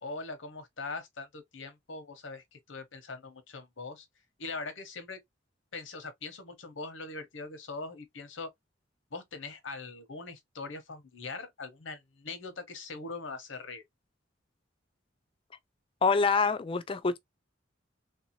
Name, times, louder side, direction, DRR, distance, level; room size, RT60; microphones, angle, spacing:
voice 1, 0.0-4.1 4.4-5.2 5.7-8.5 9.1-13.8, left 3 dB, 85° left, 1.0 m, -41 dB
voice 2, 16.0-17.2, left 4 dB, 30° left, 0.4 m, -26 dB
3.3 x 2.7 x 2.9 m
head